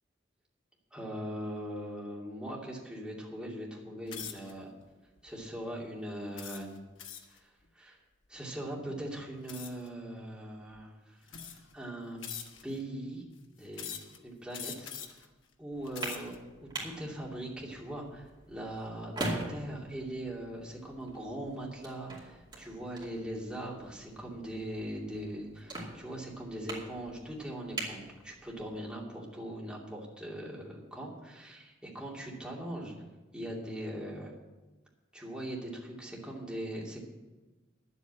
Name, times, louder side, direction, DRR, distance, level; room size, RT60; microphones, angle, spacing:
voice 1, 0.9-4.7 5.2-6.7 7.3-8.0 8.3-11.2 11.5-12.2 12.6-13.2 13.5-13.9 14.2-14.9 15.6-32.9 33.3-34.3 35.1-37.0, right 1 dB, 5° right, -4 dB, 2.6 m, -40 dB
sound 1, 4.1-4.5 5.2-5.4 6.4-7.4 9.5-9.9 10.7-10.8 11.3-11.8 12.2-12.8 13.7-14.2 14.5-15.3 15.8-16.4, left 8 dB, 70° left, 1.3 m, -43 dB
sound 2, 15.7-28.8, right 2 dB, 25° right, 2.5 m, -43 dB
11.0 x 8.3 x 7.5 m, 1.2 s
head